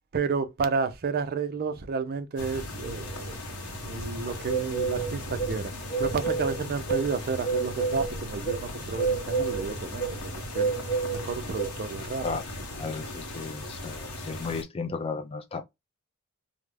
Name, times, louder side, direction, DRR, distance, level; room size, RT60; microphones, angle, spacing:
voice 1, 0.1-3.4 3.8-5.7 6.0-10.7 11.1-12.3, right 4 dB, 45° right, 0.4 m, -31 dB
sound 1, 2.4-14.6, right 3 dB, 85° left, 0.8 m, -32 dB
voice 2, 12.7-15.6, left 4 dB, 25° left, 0.3 m, -34 dB
2.3 x 2.0 x 3.2 m
head